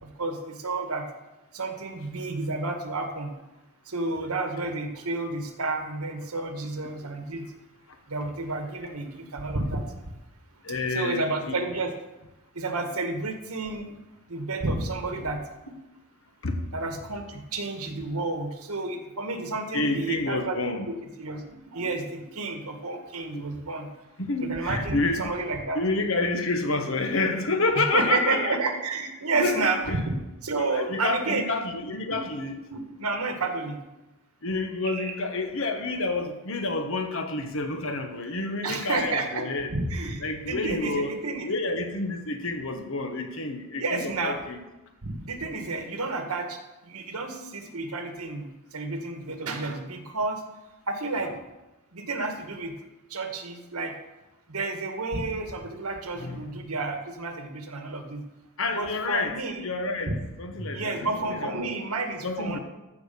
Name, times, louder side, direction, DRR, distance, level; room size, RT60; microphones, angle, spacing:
voice 1, 0.0-1.0 1.5-3.3 3.9-7.5 8.1-9.9 10.9-11.9 12.5-13.9 14.3-15.7 16.7-20.6 20.9-23.9 24.4-25.8 27.8-30.0 30.4-31.5 32.1-33.8 34.8-35.2 38.6-41.5 43.8-44.4 45.0-46.6 46.9-50.4 50.9-51.3 51.9-52.8 53.1-53.9 54.5-58.2 58.7-59.6 60.1-60.2 60.7-62.6, right 3 dB, 85° right, 5 dB, 1.6 m, -31 dB
voice 2, 10.6-11.6 16.4-16.6 19.7-20.9 23.3-23.4 24.2-25.3 25.7-28.6 29.3-30.0 30.5-32.5 34.4-39.7 40.2-41.1 41.4-44.6 56.2-56.5 58.6-59.4 59.6-60.1 60.4-61.8 62.2-62.6, left 3 dB, 60° left, 5 dB, 1.3 m, -29 dB
14.0 x 4.8 x 6.9 m, 1.0 s
head